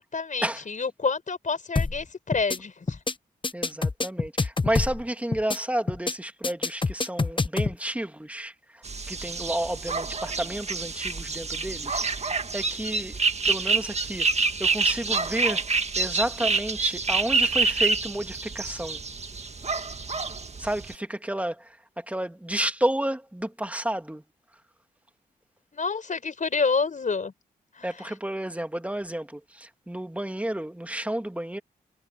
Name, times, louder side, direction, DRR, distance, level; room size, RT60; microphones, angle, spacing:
voice 1, 0.0-3.0 25.7-27.3 27.7-27.9, left 4 dB, 50° left, 5.2 m, -28 dB
sound 1, 1.8-2.0 2.3-2.6 2.9-3.1 3.4-5.0 5.3-5.6 5.9-6.1 6.4-7.7, left 3 dB, 30° left, 1.2 m, -26 dB
voice 2, 3.5-13.2 13.4-14.3 14.6-15.6 16.0-19.0 20.6-24.2 27.8-31.6, right 1 dB, 10° right, 2.3 m, -31 dB
sound 2, 8.8-20.9, right 4 dB, 40° right, 1.9 m, -27 dB
cardioid pair, 55°, 16 cm